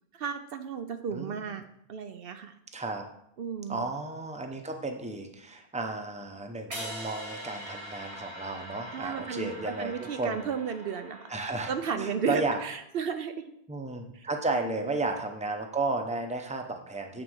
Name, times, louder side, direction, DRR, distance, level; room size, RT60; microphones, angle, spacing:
voice 1, 0.1-1.6 1.9-2.5 3.4-3.8 8.9-11.3 11.7-13.5 14.1-14.2 14.5-14.7, right 6 dB, 65° right, 8 dB, 0.8 m, -34 dB
voice 2, 1.1-1.5 2.7-3.0 3.7-10.5 11.3-12.6 13.7-17.2, right 2 dB, 5° right, 4 dB, 0.8 m, -33 dB
sound 1, 6.7-12.8, equal, 80° right, 2.4 m, -43 dB
8.9 x 4.2 x 6.3 m, 0.74 s
omnidirectional pair, 1.1 m